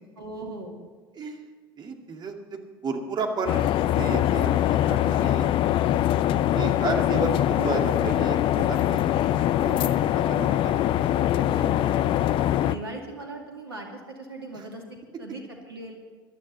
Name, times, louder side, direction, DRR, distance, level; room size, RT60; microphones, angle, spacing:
voice 1, 0.2-0.7 11.5-11.9 12.6-15.9, right 2 dB, 85° right, 1 dB, 2.4 m, -39 dB
voice 2, 1.1-1.5 1.8-5.5 6.5-9.1 9.6-10.7 14.5-14.6, right 4 dB, 35° right, 3 dB, 2.2 m, -33 dB
sound 1, 3.5-12.8, left 12 dB, 45° left, 0.6 m, -23 dB
18.0 x 12.5 x 4.1 m, 1.5 s
figure-of-eight pair, 65°, 12 cm